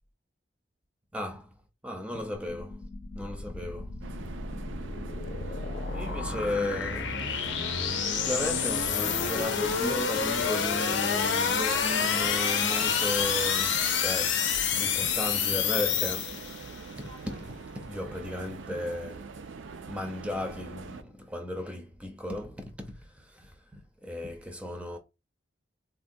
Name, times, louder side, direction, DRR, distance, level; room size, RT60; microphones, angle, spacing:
voice 1, 1.1-1.5 1.8-2.8 3.2-3.9 5.9-16.4 17.0-19.3 19.9-25.0, left 1 dB, 5° right, 0.5 m, -35 dB
sound 1, 2.2-16.8, left 6 dB, 80° left, 0.6 m, -29 dB
sound 2, 4.0-21.0, right 4 dB, 85° right, 0.4 m, -43 dB
3.4 x 2.2 x 2.6 m
head